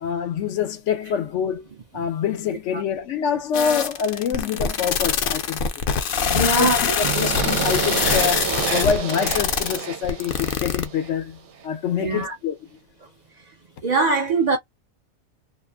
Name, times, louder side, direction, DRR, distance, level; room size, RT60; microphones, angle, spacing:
voice 1, 0.0-1.6 1.9-5.8 6.2-6.7 7.0-12.6, left 7 dB, 85° left, 1.0 m, -26 dB
sound 1, 3.5-10.8, left 7 dB, 60° left, 0.6 m, -23 dB
voice 2, 6.3-7.0 12.0-12.4 13.0-13.1 13.4-13.5 13.8-14.6, right 3 dB, 55° right, 0.5 m, -22 dB
sound 2, 7.0-11.1, right 8 dB, 75° right, 0.9 m, -28 dB
2.5 x 2.4 x 2.3 m
omnidirectional pair, 1.2 m